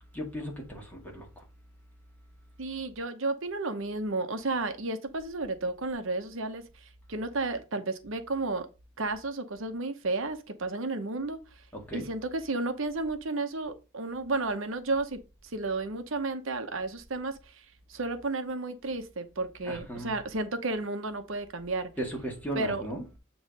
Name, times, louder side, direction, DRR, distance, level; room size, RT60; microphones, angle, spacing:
voice 1, 0.1-1.3 11.7-12.0 19.6-20.1 22.0-23.0, right 1 dB, 10° left, 1.9 m, -36 dB
voice 2, 2.6-8.7 9.0-11.4 11.9-15.2 15.5-17.6 17.9-21.9 22.5-22.8, right 3 dB, 70° right, 0.9 m, -32 dB
8.0 x 3.1 x 5.2 m
head